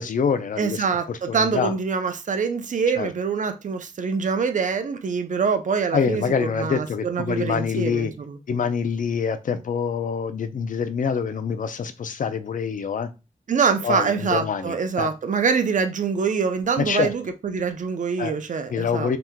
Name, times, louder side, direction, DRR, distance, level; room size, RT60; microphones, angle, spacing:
voice 1, 0.0-1.7 3.0-3.1 5.9-8.1 8.5-13.1 13.8-15.1 16.8-17.1 18.2-18.3 18.7-19.2, left 6 dB, 75° left, 0.4 m, -25 dB
voice 2, 0.6-8.4 13.5-19.1, right 5 dB, 70° right, 0.5 m, -25 dB
2.9 x 2.1 x 3.6 m
wide cardioid pair, 120°, 13 cm